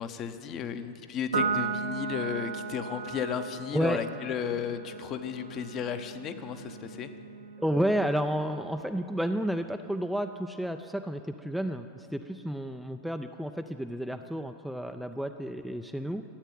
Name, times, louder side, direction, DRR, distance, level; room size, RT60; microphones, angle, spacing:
voice 1, 0.0-7.1, left 7 dB, 35° left, 9 dB, 0.9 m, -34 dB
Piano, 1.3-8.0, right 5 dB, 75° right, 0.9 m, -36 dB
voice 2, 7.6-16.2, equal, ahead, 7 dB, 0.4 m, -31 dB
13.0 x 9.0 x 9.2 m, 2.9 s
figure-of-eight pair, 90°, 0 cm